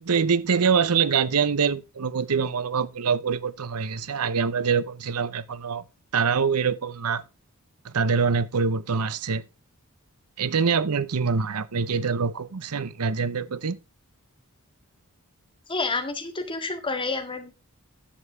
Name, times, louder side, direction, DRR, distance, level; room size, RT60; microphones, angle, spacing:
voice 1, 0.0-5.8 6.1-7.2 7.8-9.4 10.4-13.8, right 5 dB, 80° right, 0.7 m, -24 dB
voice 2, 15.7-17.6, left 3 dB, 25° left, 1.9 m, -29 dB
10.0 x 7.5 x 4.5 m
head